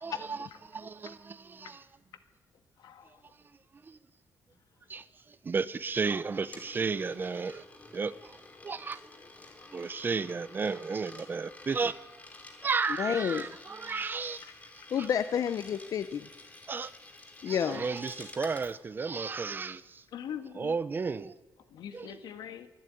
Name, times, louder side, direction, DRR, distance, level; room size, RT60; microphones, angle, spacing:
voice 1, 0.0-1.8 3.9-4.0 4.9-7.6 7.9-8.4 8.6-9.0 9.7-12.0 12.6-14.4 15.0-15.1 16.7-16.9 17.5-20.0 20.6-21.3 21.9-22.1, right 4 dB, 30° right, 0.7 m, -33 dB
voice 2, 2.8-3.3 4.9-5.0 14.1-14.2 14.4-14.5 20.1-20.7 21.7-22.7, left 9 dB, 85° left, 1.8 m, -43 dB
Coin (dropping), 6.0-18.8, left 2 dB, 20° left, 2.7 m, -51 dB
voice 3, 13.0-13.5 14.9-16.3 17.4-17.9, left 8 dB, 55° left, 0.7 m, -30 dB
23.5 x 12.0 x 9.3 m
cardioid pair, 150°, 7 cm